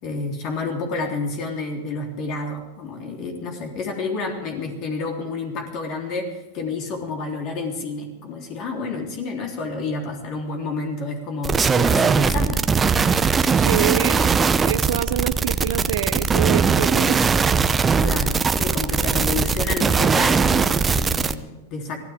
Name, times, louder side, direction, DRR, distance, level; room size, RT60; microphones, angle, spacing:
voice 1, 0.0-12.6 18.0-22.0, left 3 dB, 45° left, 1 dB, 3.7 m, -29 dB
sound 1, 11.4-21.3, right 5 dB, 20° right, 0.7 m, -20 dB
voice 2, 13.5-14.3 14.7-17.2, right 12 dB, 70° right, 11 dB, 0.7 m, -26 dB
24.0 x 15.5 x 3.7 m, 1.1 s
hypercardioid pair, 110°, 0 cm